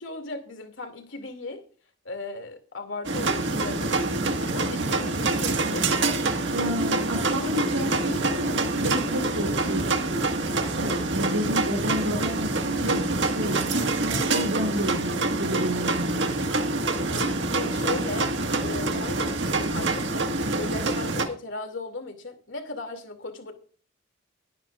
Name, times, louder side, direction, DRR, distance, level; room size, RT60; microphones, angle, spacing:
voice 1, 0.0-1.7 2.0-3.9 4.4-6.0 17.5-18.3 18.6-20.3 20.6-23.5, left 2 dB, 65° left, 6 dB, 2.6 m, -37 dB
sound 1, 3.0-21.3, right 2 dB, 60° right, 1.7 m, -26 dB
voice 2, 6.4-10.2 10.7-13.7 14.0-16.3, equal, 80° right, 3 dB, 3.5 m, -31 dB
21.0 x 10.0 x 2.5 m, 0.41 s
head